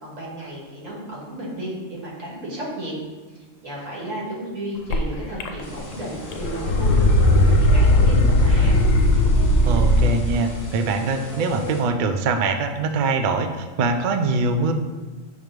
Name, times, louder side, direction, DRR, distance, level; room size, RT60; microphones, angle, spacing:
voice 1, 0.0-3.0 3.6-8.8, right 1 dB, 85° right, -4 dB, 2.0 m, -33 dB
sound 1, 4.9-5.0 5.4-5.9 6.2-10.2, left 1 dB, 80° left, 1.0 m, -17 dB
sound 2, 5.6-11.8, right 1 dB, 15° left, 0.9 m, -37 dB
voice 2, 9.6-14.7, right 3 dB, 65° right, 7 dB, 0.5 m, -23 dB
6.5 x 3.1 x 5.1 m, 1.3 s
omnidirectional pair, 1.3 m